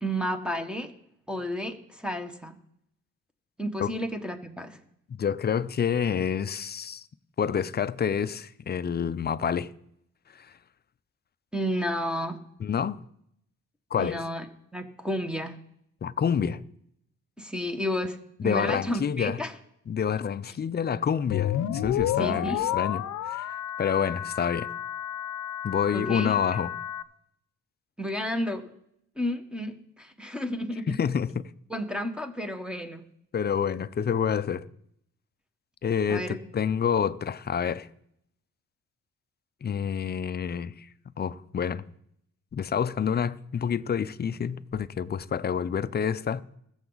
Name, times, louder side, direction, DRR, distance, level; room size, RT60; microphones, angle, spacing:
voice 1, 0.0-0.9 1.3-2.6 3.6-4.8 11.5-12.4 13.9-14.4 14.7-15.6 17.4-19.5 22.2-22.6 25.9-26.4 28.0-28.6 29.2-30.9 31.7-33.0 36.1-36.4, equal, 5° right, 1.4 m, -31 dB
voice 2, 5.2-7.1 7.4-9.7 10.3-10.5 12.6-13.0 13.9-14.2 16.0-16.6 18.4-19.4 19.9-23.0 23.3-23.4 23.8-24.7 25.6-26.7 30.9-31.4 33.3-34.7 35.8-37.9 39.6-40.9 41.2-41.8 42.5-46.4, left 7 dB, 35° left, 0.6 m, -28 dB
sound 1, 21.3-27.0, left 11 dB, 75° left, 0.8 m, -31 dB
20.5 x 7.1 x 4.0 m
cardioid pair, 90°, 30 cm